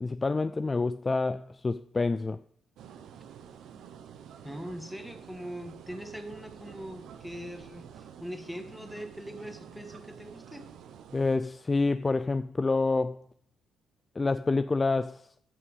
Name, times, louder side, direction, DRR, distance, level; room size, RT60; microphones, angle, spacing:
voice 1, 0.0-2.4 11.1-13.2 14.2-15.3, left 3 dB, 25° left, 0.3 m, -27 dB
sound 1, 2.8-11.4, right 8 dB, 80° right, 1.0 m, -49 dB
voice 2, 4.4-10.6, equal, ahead, 1.5 m, -41 dB
12.5 x 5.8 x 5.4 m
cardioid pair, 90°, 0 cm